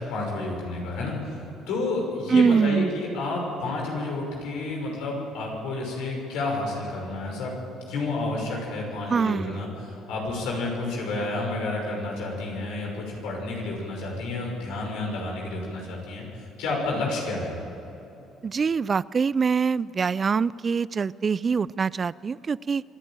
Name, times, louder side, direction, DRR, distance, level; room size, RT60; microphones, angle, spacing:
voice 1, 0.0-1.4 1.7-7.5 7.9-17.6, left 2 dB, 75° left, -1 dB, 6.0 m, -30 dB
voice 2, 2.3-2.9 9.1-9.6 18.4-22.8, right 5 dB, 40° right, 21 dB, 0.4 m, -24 dB
25.5 x 11.0 x 9.1 m, 3.0 s
hypercardioid pair, 60°, 0 cm